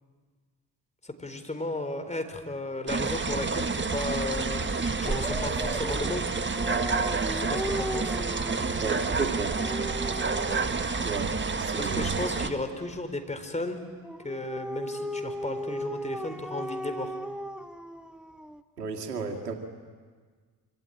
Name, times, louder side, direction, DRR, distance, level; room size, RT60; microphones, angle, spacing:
voice 1, 1.0-6.4 7.3-8.2 11.8-13.8 14.2-17.2, left 2 dB, 15° left, 7 dB, 4.2 m, -34 dB
sound 1, 2.9-12.5, right 4 dB, 25° right, 1.8 m, -29 dB
Dog, 5.0-10.9 14.0-18.6, equal, ahead, 1.4 m, -37 dB
voice 2, 8.8-9.6 11.0-11.3 11.6-12.1 18.8-19.6, right 5 dB, 85° right, 3 dB, 2.2 m, -32 dB
26.5 x 25.0 x 9.0 m, 1.5 s
figure-of-eight pair, 50°, 47 cm